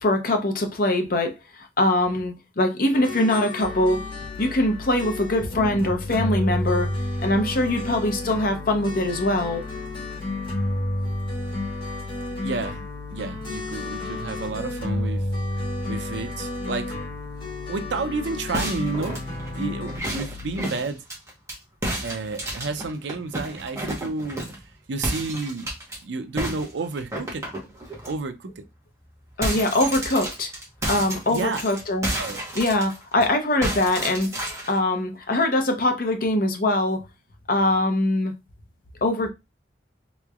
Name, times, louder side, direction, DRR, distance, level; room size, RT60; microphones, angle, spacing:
voice 1, 0.0-4.0 4.4-6.9 7.2-9.6 29.4-30.5 30.9-32.1 32.5-34.3 34.7-37.0 37.5-38.3 39.0-39.3, left 1 dB, 50° left, 0.7 m, -22 dB
sound 1, 2.9-20.0, left 1 dB, 30° left, 2.0 m, -31 dB
sound 2, 3.6-20.6, left 6 dB, 80° left, 1.0 m, -40 dB
voice 2, 12.4-12.8 13.1-15.3 15.5-17.0 17.7-19.2 19.6-21.0 22.0-24.6 24.9-25.7 26.0-27.4 28.1-28.6 31.3-31.6 32.2-32.4, right 3 dB, 85° right, 0.5 m, -31 dB
sound 3, 18.5-21.6 21.8-24.6 25.0-26.0 26.4-28.1 28.5-28.7 29.0-33.2 33.6-34.8, right 1 dB, 15° right, 1.0 m, -31 dB
3.8 x 3.0 x 2.3 m
head